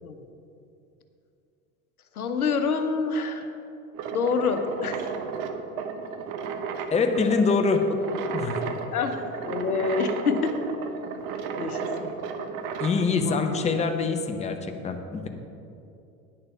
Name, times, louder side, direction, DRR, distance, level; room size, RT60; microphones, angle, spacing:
voice 1, 2.1-3.5 4.1-5.1 8.9-9.1 9.4-10.5 11.6-12.1 12.9-13.7, left 5 dB, 85° left, 7 dB, 0.9 m, -27 dB
sound 1, 3.9-13.0, right 6 dB, 50° right, 1.0 m, -33 dB
voice 2, 6.9-7.9 8.3-8.7 12.8-15.3, left 4 dB, 15° left, 5 dB, 0.8 m, -25 dB
9.9 x 6.8 x 5.6 m, 2.7 s
hypercardioid pair, 80°, 43 cm